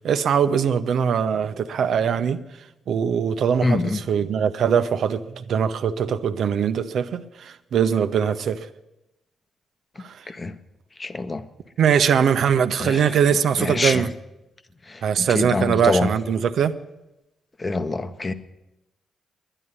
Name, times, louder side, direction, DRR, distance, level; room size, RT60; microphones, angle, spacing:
voice 1, 0.0-2.4 2.9-8.7 10.0-10.2 11.8-14.1 15.0-16.7, right 7 dB, 65° right, 0.6 m, -21 dB
voice 2, 3.6-4.0 10.3-10.5 11.0-11.4 12.8-13.1 13.6-14.1 14.9-16.1 17.6-18.3, left 3 dB, 35° left, 1.0 m, -25 dB
11.0 x 10.0 x 9.4 m
hypercardioid pair, 45°, 0 cm